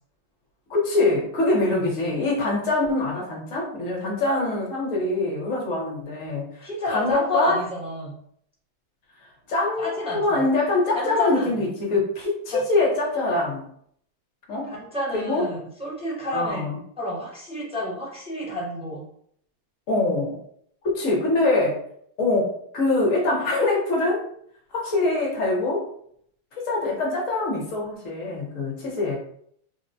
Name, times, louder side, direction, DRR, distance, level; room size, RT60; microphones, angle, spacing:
voice 1, 0.7-7.6 9.5-13.7 14.5-14.7 15.1-15.4 16.3-16.8 19.9-20.4 20.8-21.8 22.2-24.3 24.7-25.9 26.6-29.2, left 2 dB, 55° left, -2 dB, 1.2 m, -24 dB
voice 2, 6.6-8.2 9.8-10.5 10.9-11.5 12.5-12.6 14.7-19.1, left 1 dB, 10° right, -6 dB, 0.3 m, -30 dB
3.4 x 2.1 x 2.6 m, 0.66 s
omnidirectional pair, 1.7 m